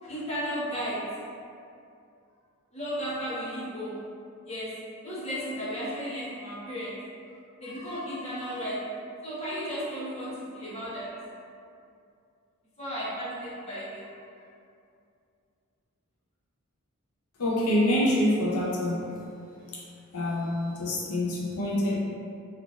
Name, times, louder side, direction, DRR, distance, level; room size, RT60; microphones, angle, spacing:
voice 1, 0.0-1.1 2.7-4.0 4.4-4.8 5.0-7.0 7.6-11.2 12.8-14.1, equal, 30° left, -10 dB, 0.8 m, -34 dB
voice 2, 17.4-19.2 20.1-22.0, left 1 dB, 90° left, -5 dB, 0.6 m, -26 dB
3.3 x 2.4 x 2.4 m, 2.5 s
head